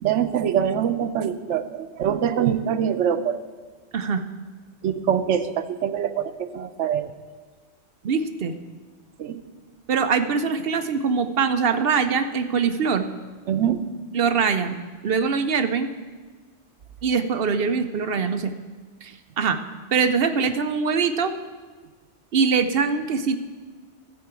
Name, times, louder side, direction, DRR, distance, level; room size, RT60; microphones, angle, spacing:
voice 1, 0.0-3.4 4.8-7.1 9.2-9.4 13.5-13.8, right 9 dB, 90° right, 10 dB, 1.0 m, -24 dB
voice 2, 3.9-4.2 8.0-8.5 9.9-13.1 14.1-14.8 15.0-15.9 17.0-18.5 19.0-19.6 19.9-21.3 22.3-23.4, right 5 dB, 60° right, 9 dB, 0.8 m, -23 dB
13.0 x 4.7 x 8.2 m, 1.4 s
omnidirectional pair, 1.2 m